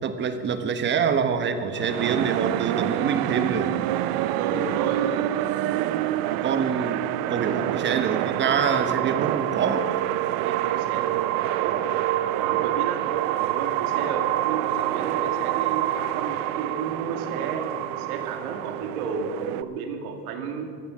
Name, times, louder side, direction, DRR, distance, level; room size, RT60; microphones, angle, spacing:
voice 1, 0.0-3.7 6.4-9.9, right 6 dB, 25° right, 9 dB, 1.0 m, -26 dB
sound 1, 1.7-19.6, right 14 dB, 50° right, 0.6 m, -26 dB
voice 2, 4.4-5.1 7.4-7.7 10.4-13.0 13.4-20.7, right 5 dB, 75° right, 4 dB, 2.3 m, -32 dB
15.0 x 12.5 x 6.2 m, 2.1 s
supercardioid pair, 135°, 44 cm